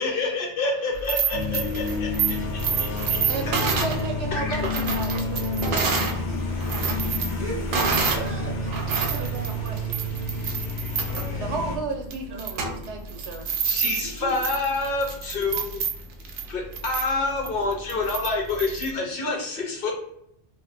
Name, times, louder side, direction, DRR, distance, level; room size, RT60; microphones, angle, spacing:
voice 1, 0.0-2.1 2.4-2.5 2.8-3.3 4.3-4.6 13.6-15.8 16.5-19.9, left 3 dB, 55° left, 1 dB, 0.8 m, -27 dB
voice 2, 0.8-1.8 2.9-3.3 3.6-3.8 6.3-6.5 7.0-9.4 10.6-11.6 12.3-12.8 13.4-13.5 13.8-14.3 16.3-16.5, right 3 dB, 20° right, -1 dB, 0.4 m, -40 dB
sound 1, 0.9-6.2 6.5-8.3 8.7-18.9, right 5 dB, 60° right, 0.6 m, -29 dB
sound 2, 1.3-11.8, left 2 dB, 80° left, 1.0 m, -29 dB
voice 3, 3.3-6.6 7.7-7.9 8.9-10.0 11.4-13.5, right 4 dB, 75° right, 3 dB, 0.9 m, -34 dB
2.5 x 2.1 x 3.9 m, 0.76 s
omnidirectional pair, 1.2 m